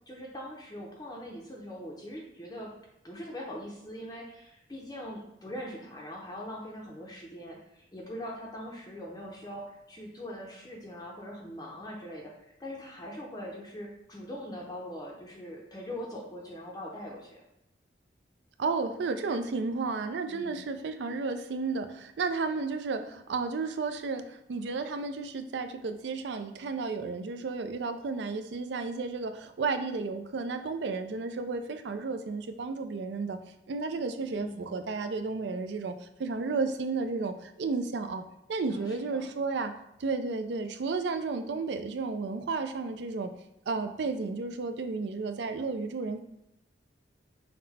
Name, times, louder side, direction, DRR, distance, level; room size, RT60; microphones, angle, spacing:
voice 1, 0.1-2.7 3.0-17.4 20.3-20.6 34.3-34.7 38.7-39.3, equal, 20° left, -2 dB, 0.6 m, -42 dB
voice 2, 18.6-33.4 33.7-38.2 38.5-39.7 40.0-43.4 43.7-46.2, right 4 dB, 70° right, 8 dB, 0.4 m, -32 dB
5.8 x 2.1 x 4.0 m, 0.81 s
head